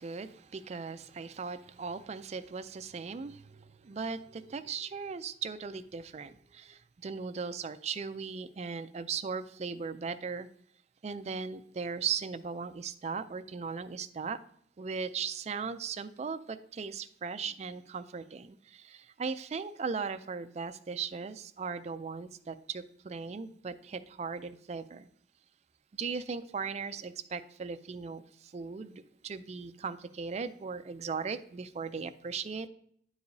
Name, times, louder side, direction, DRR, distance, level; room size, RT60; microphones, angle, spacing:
voice 1, 0.0-10.5 11.0-14.4 14.8-25.1 25.9-32.7, right 5 dB, 35° right, 0.3 m, -38 dB
10.5 x 4.8 x 2.7 m
head